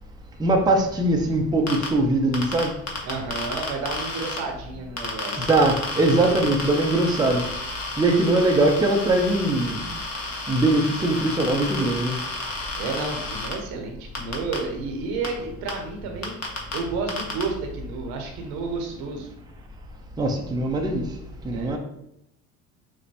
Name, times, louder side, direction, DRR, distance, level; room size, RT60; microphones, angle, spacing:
voice 1, 0.4-2.7 5.4-7.4 8.0-9.9 10.5-12.2 20.2-21.0 21.4-21.8, right 2 dB, 10° right, 2 dB, 0.6 m, -21 dB
sound 1, 1.7-1.9 2.3-4.4 5.0-13.5 14.1-14.6 15.2-15.3 15.7-15.8 16.2-16.8 17.1-17.4, left 3 dB, 40° left, 1.3 m, -31 dB
voice 2, 3.0-5.5 12.8-19.3 21.5-21.8, right 4 dB, 65° right, 3 dB, 1.0 m, -31 dB
6.4 x 2.2 x 2.9 m, 0.78 s
hypercardioid pair, 60°, 41 cm